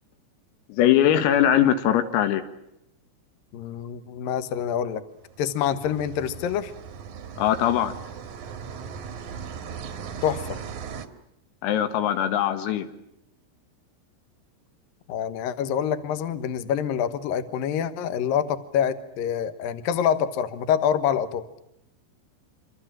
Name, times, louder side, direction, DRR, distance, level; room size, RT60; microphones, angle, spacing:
voice 1, 0.7-2.4 7.4-7.9 11.6-12.9, left 11 dB, 90° left, 9 dB, 4.3 m, -21 dB
voice 2, 3.5-5.0 5.4-6.7 10.2-10.6 15.1-21.4, left 8 dB, 75° left, 11 dB, 2.2 m, -26 dB
sound 1, 5.2-11.1, right 7 dB, 65° right, 1.9 m, -38 dB
26.5 x 26.5 x 7.5 m, 0.81 s
omnidirectional pair, 5.9 m